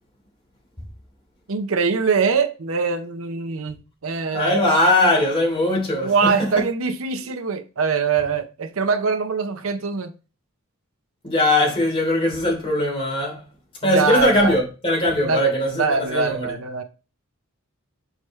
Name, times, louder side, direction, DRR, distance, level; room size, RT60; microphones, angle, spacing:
voice 1, 1.5-4.6 5.9-10.1 13.8-14.5 15.2-16.8, right 5 dB, 65° right, 0.7 m, -23 dB
voice 2, 4.3-6.5 11.2-13.4 13.8-16.5, left 1 dB, 25° left, 3.1 m, -20 dB
6.5 x 4.8 x 3.1 m
head